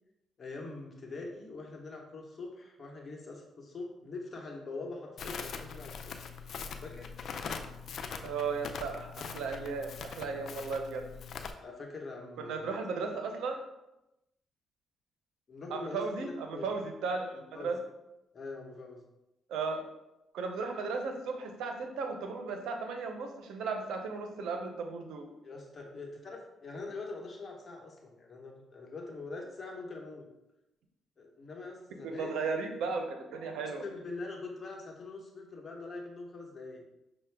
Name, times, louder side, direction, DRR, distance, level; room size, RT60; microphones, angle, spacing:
voice 1, 0.4-6.2 6.8-7.1 11.6-12.7 15.5-16.7 17.3-17.7 18.3-19.0 25.4-30.3 31.2-32.3 33.8-36.8, left 3 dB, 40° left, 0 dB, 0.9 m, -43 dB
Crackle, 5.2-11.5, left 6 dB, 60° left, 0.4 m, -42 dB
voice 2, 8.2-11.0 12.4-13.7 15.7-17.8 19.5-19.8 20.3-25.3 32.0-33.8, right 4 dB, 80° right, 4 dB, 0.6 m, -35 dB
5.5 x 2.1 x 3.3 m, 0.92 s
cardioid pair, 90°, 0 cm